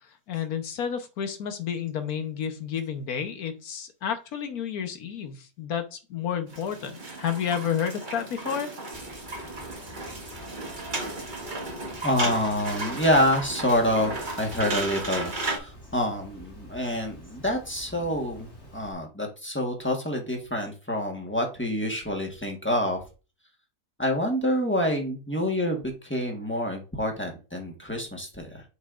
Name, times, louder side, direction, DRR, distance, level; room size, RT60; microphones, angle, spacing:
voice 1, 0.3-8.7, left 8 dB, 65° left, 7 dB, 1.5 m, -31 dB
sound 1, 6.5-15.6, right 2 dB, 30° right, 1.5 m, -34 dB
Water, 8.9-18.9, left 1 dB, 40° left, 3.0 m, -48 dB
voice 2, 12.0-15.3 15.6-23.0 24.0-28.6, equal, 10° left, 1 dB, 1.2 m, -27 dB
7.9 x 5.3 x 2.5 m, 0.32 s
omnidirectional pair, 1.7 m